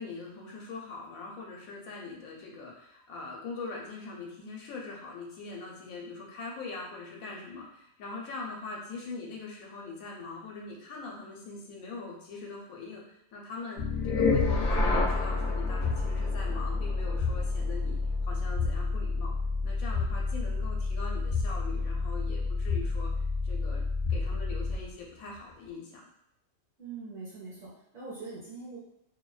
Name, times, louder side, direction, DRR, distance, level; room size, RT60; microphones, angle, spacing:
voice 1, 0.0-18.0 18.2-19.4 19.6-23.1 23.4-23.8 24.1-26.0, left 3 dB, 85° left, -1 dB, 1.0 m, -42 dB
sound 1, 13.8-24.9, left 3 dB, 65° left, 0.7 m, -29 dB
voice 2, 26.8-28.8, right 4 dB, 45° right, -9 dB, 0.9 m, -42 dB
2.5 x 2.1 x 2.3 m, 0.78 s
omnidirectional pair, 1.4 m